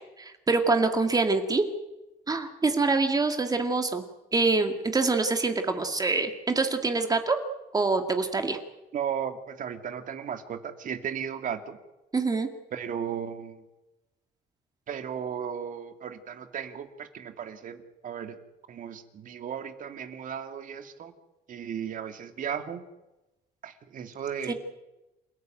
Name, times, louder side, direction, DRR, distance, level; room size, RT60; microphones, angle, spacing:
voice 1, 0.2-1.6 2.3-4.0 4.3-7.4 7.7-8.6 12.1-12.5 24.5-24.6, right 3 dB, 20° right, 6 dB, 2.2 m, -25 dB
voice 2, 8.9-11.8 12.7-13.6 14.9-18.4 18.7-21.1 21.5-22.8 23.6-24.5, right 8 dB, 50° right, 7 dB, 2.5 m, -35 dB
28.5 x 14.0 x 9.3 m, 1.0 s
cardioid pair, 110°, 17 cm